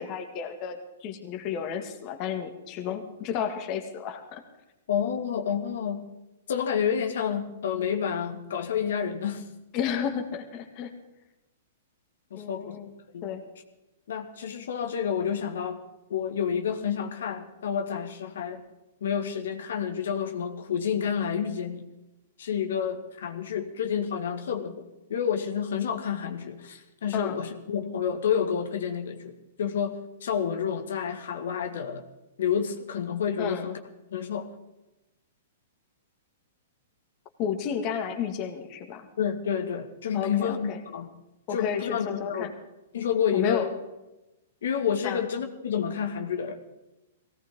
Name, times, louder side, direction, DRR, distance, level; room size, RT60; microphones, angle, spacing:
voice 1, 0.0-4.4 9.7-10.9 12.3-12.9 13.2-13.4 27.1-27.4 33.4-33.7 37.4-39.1 40.1-40.8 41.5-42.5 43.3-43.7 45.0-45.2, left 8 dB, 30° left, 5 dB, 2.0 m, -32 dB
voice 2, 4.9-6.1 6.5-9.5 12.3-12.8 13.1-13.3 14.1-15.8 16.1-18.6 19.0-21.8 22.4-32.0 32.4-33.8 34.1-34.5 39.2-41.1 41.5-42.5 42.9-43.7 44.6-46.8, left 7 dB, 75° left, 6 dB, 1.9 m, -29 dB
18.5 x 17.0 x 3.8 m, 0.98 s
hypercardioid pair, 155°, 0 cm